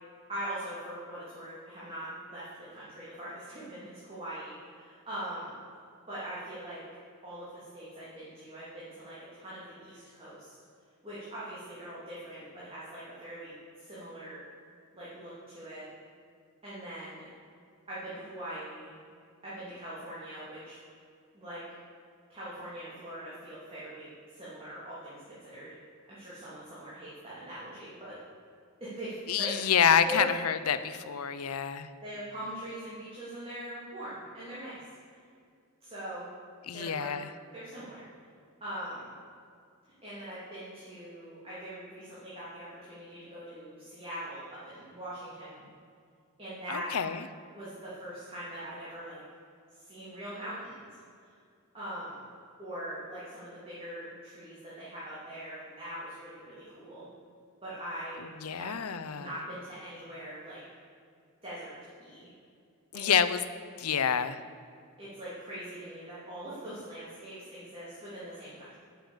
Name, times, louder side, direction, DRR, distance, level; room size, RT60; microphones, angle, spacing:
voice 1, 0.3-5.5 6.1-6.8 7.2-10.5 11.0-14.4 14.9-15.8 16.6-17.3 17.9-18.9 19.4-20.8 21.3-21.6 22.3-25.7 26.1-28.2 28.8-29.5 30.0-30.2 32.0-34.8 35.8-36.3 36.7-37.2 37.5-38.0 38.6-39.1 40.0-45.6 46.4-47.0 47.5-49.2 49.7-50.9 51.7-52.2 52.6-57.1 57.6-58.7 59.1-60.6 61.4-61.7 62.0-62.3 62.9-63.1 65.0-68.8, right 1 dB, 25° right, -10 dB, 2.9 m, -42 dB
voice 2, 29.3-31.9 36.7-37.3 46.7-47.2 58.4-59.3 62.9-63.4 63.8-64.4, left 7 dB, 90° left, 12 dB, 0.7 m, -27 dB
12.0 x 7.1 x 7.3 m, 2.3 s
head